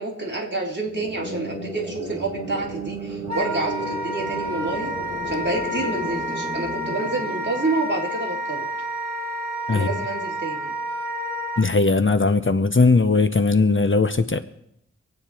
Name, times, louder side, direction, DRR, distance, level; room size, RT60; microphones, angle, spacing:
voice 1, 0.0-4.9 5.3-8.7 9.7-10.8, right 2 dB, 35° right, -3 dB, 3.7 m, -28 dB
sound 1, 0.7-8.3, right 1 dB, 20° right, 7.3 m, -34 dB
Wind instrument woodwind instrument, 3.3-11.6, equal, 65° right, 1.7 m, -30 dB
voice 2, 11.6-14.4, left 3 dB, 45° left, 10 dB, 0.9 m, -19 dB
25.0 x 8.9 x 4.4 m, 0.75 s
wide cardioid pair, 70°, 29 cm